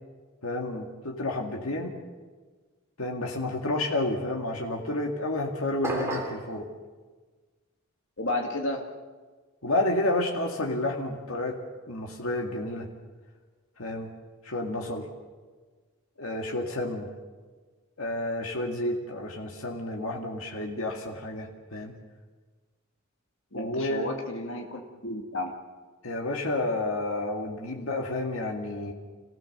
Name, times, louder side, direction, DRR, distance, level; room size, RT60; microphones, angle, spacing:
voice 1, 0.4-1.9 3.0-6.7 9.6-11.6 11.9-12.9 13.8-14.1 14.4-15.1 16.2-17.1 18.0-22.0 23.5-24.2 26.0-28.9, left 2 dB, 80° left, 1 dB, 2.2 m, -30 dB
sound 1, 5.8-6.5, right 2 dB, 10° right, 2.8 m, -31 dB
voice 2, 8.2-8.8 23.5-25.5, left 2 dB, 60° left, 2 dB, 2.0 m, -32 dB
27.0 x 16.0 x 6.8 m, 1.4 s
head